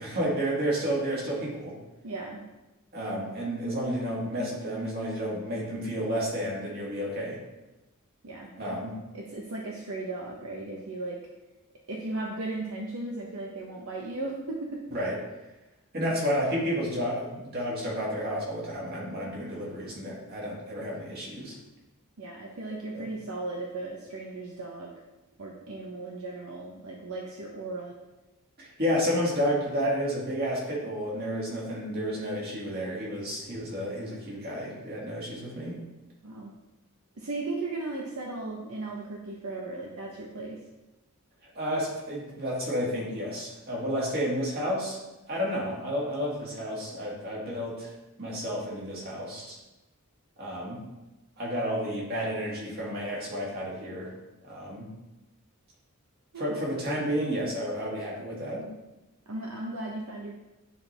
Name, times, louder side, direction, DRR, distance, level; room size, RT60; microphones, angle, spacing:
voice 1, 0.0-1.8 2.9-7.4 8.6-8.9 14.9-15.2 15.9-21.6 22.9-23.1 28.6-35.8 41.4-45.0 45.3-47.9 48.2-49.6 50.4-50.8 51.4-54.1 54.4-54.9 56.4-58.7, equal, 45° right, -4 dB, 2.1 m, -31 dB
voice 2, 2.0-2.4 8.2-8.5 9.1-11.2 11.9-14.9 22.2-24.9 25.4-27.9 36.2-36.5 37.2-40.6 56.3-56.5 59.3-60.3, right 2 dB, 70° right, -1 dB, 0.8 m, -36 dB
9.4 x 4.4 x 3.3 m, 1.0 s
head